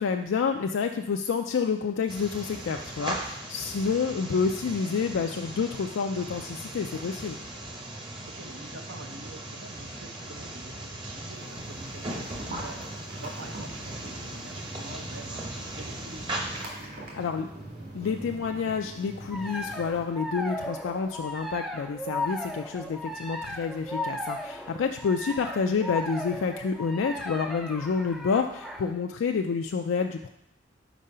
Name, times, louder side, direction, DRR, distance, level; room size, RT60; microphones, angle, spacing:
voice 1, 0.0-7.4 17.2-17.5 17.9-30.3, left 5 dB, 85° left, 4 dB, 0.4 m, -29 dB
sound 1, 2.1-16.6, right 1 dB, 25° right, 0.8 m, -38 dB
voice 2, 8.3-16.3 16.8-17.3 23.1-23.3 25.0-25.1, right 2 dB, 80° right, 4 dB, 0.9 m, -46 dB
sound 2, 11.3-20.0, right 1 dB, 50° right, 2.0 m, -43 dB
sound 3, 19.3-28.9, left 1 dB, ahead, 0.4 m, -36 dB
5.1 x 4.7 x 5.5 m, 0.78 s
head